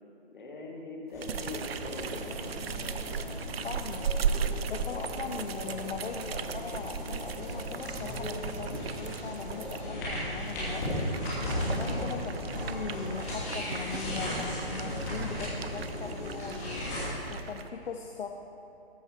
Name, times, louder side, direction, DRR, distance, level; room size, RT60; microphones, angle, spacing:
voice 1, 0.2-2.5 12.2-12.3, left 2 dB, 50° left, 0 dB, 1.6 m, -42 dB
sound 1, 1.1-17.0, left 1 dB, 15° left, 1.7 m, -36 dB
sound 2, 1.2-9.8 10.4-17.7, right 6 dB, 70° right, 0.5 m, -37 dB
voice 2, 3.6-11.1 11.7-18.3, left 5 dB, 70° left, 3 dB, 0.7 m, -40 dB
13.5 x 5.4 x 4.4 m, 2.9 s
hypercardioid pair, 170°, 32 cm